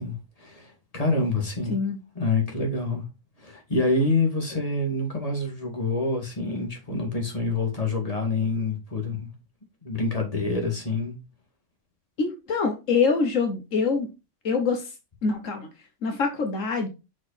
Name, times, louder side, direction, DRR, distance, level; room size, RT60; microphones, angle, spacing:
voice 1, 0.0-1.8 2.2-3.0 3.4-9.3 9.8-11.2, left 3 dB, 30° left, 2.2 m, -27 dB
voice 2, 12.2-14.1 14.4-14.8 15.2-15.7 16.0-16.9, left 4 dB, 80° left, 1.5 m, -24 dB
6.0 x 5.1 x 4.1 m
omnidirectional pair, 1.3 m